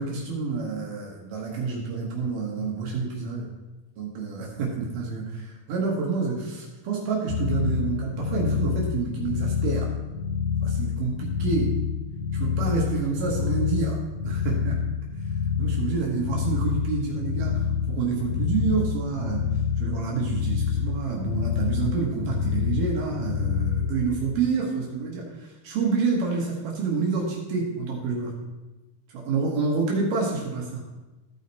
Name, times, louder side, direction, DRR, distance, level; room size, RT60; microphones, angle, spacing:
voice 1, 0.0-3.5 4.0-9.9 10.6-11.7 12.3-14.0 14.2-14.8 15.6-19.4 19.8-28.3 29.1-30.8, right 4 dB, 75° right, -2 dB, 2.9 m, -28 dB
sound 1, 7.3-23.9, left 6 dB, 75° left, 3.0 m, -27 dB
14.5 x 5.0 x 4.1 m, 1.1 s
omnidirectional pair, 3.9 m